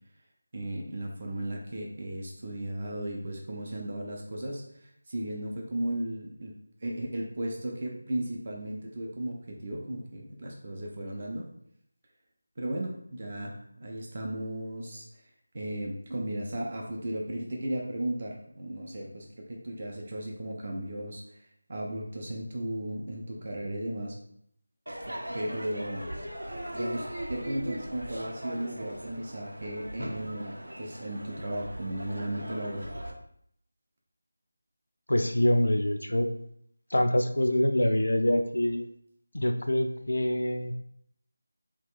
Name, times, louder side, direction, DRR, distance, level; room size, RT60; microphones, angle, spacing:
voice 1, 0.5-6.5 6.8-11.5 12.6-15.1 15.5-24.2 25.1-26.1 26.7-32.9, right 1 dB, 40° right, 0 dB, 0.5 m, -35 dB
Crowd / Fireworks, 24.9-33.1, equal, 90° right, 0.7 m, -39 dB
voice 2, 35.1-36.3 36.9-38.9 39.3-40.7, left 1 dB, 80° left, 7 dB, 0.4 m, -25 dB
2.9 x 2.4 x 3.6 m, 0.69 s
figure-of-eight pair, 170°, 0 cm